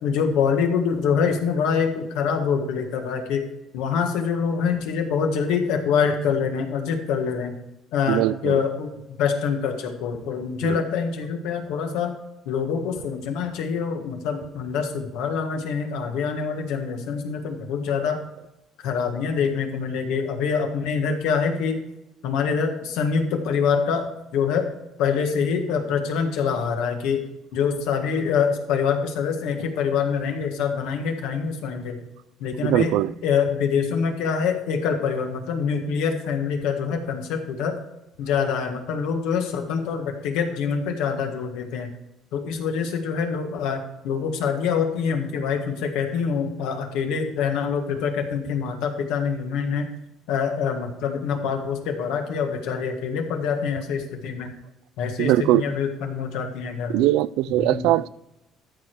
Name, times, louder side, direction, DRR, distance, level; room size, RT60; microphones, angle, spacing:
voice 1, 0.0-3.4 3.7-7.6 7.9-12.1 12.4-18.2 18.8-21.9 22.2-24.1 24.3-24.7 25.0-27.2 27.5-32.0 32.4-37.7 38.2-41.9 42.3-49.9 50.3-54.5 55.0-57.1 57.6-57.9, left 6 dB, 85° left, 1.6 m, -25 dB
voice 2, 8.1-8.6 10.6-10.8 32.6-33.1 55.2-55.6 56.9-58.1, right 15 dB, 85° right, 0.3 m, -21 dB
13.5 x 5.0 x 4.6 m
cardioid pair, 150°, 0 cm